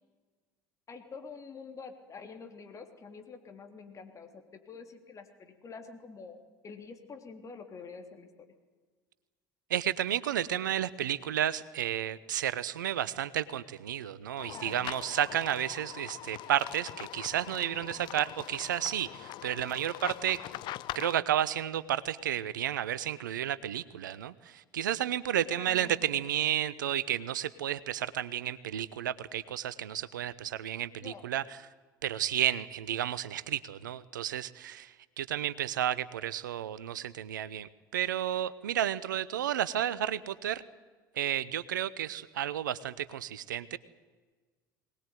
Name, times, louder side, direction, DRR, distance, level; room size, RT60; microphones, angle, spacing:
voice 1, 0.9-6.4 6.6-8.3 14.5-14.9 25.4-25.9 31.0-31.2, left 5 dB, 30° left, 5 dB, 3.4 m, -47 dB
voice 2, 9.7-20.4 20.9-31.4 32.0-40.6 41.1-43.8, right 11 dB, 70° right, 19 dB, 0.8 m, -32 dB
sound 1, 14.4-21.1, left 15 dB, 45° left, 0.6 m, -43 dB
22.5 x 19.0 x 9.4 m, 1.4 s
figure-of-eight pair, 65°, 11 cm